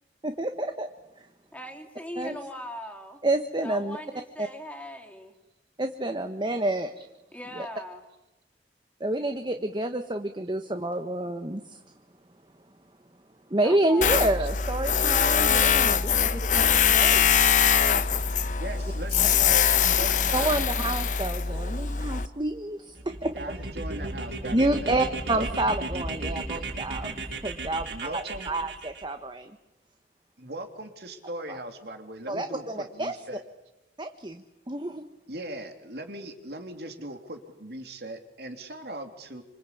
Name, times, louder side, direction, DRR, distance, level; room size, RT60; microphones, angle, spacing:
voice 1, 0.2-0.9 2.2-2.4 3.2-4.0 4.4-4.5 5.8-7.1 7.6-7.7 9.0-11.8 13.5-17.4 19.5-19.6 20.3-23.3 24.5-27.1 27.4-27.8 28.1-29.6 31.5-31.6 32.3-33.1 34.0-35.0, right 1 dB, 25° right, 7 dB, 1.2 m, -29 dB
voice 2, 1.5-3.2 3.6-5.3 7.3-8.0 13.6-14.2, left 1 dB, 10° left, 1 dB, 3.7 m, -40 dB
Tools, 14.0-22.3, left 7 dB, 45° left, 1.2 m, -23 dB
voice 3, 18.6-20.5 23.3-25.0 25.3-25.5 27.9-28.5 30.4-33.4 35.3-39.4, right 1 dB, 60° right, 6 dB, 3.3 m, -39 dB
sound 1, 23.0-29.0, right 2 dB, 85° right, 6.1 m, -35 dB
26.5 x 26.0 x 8.5 m, 0.92 s
head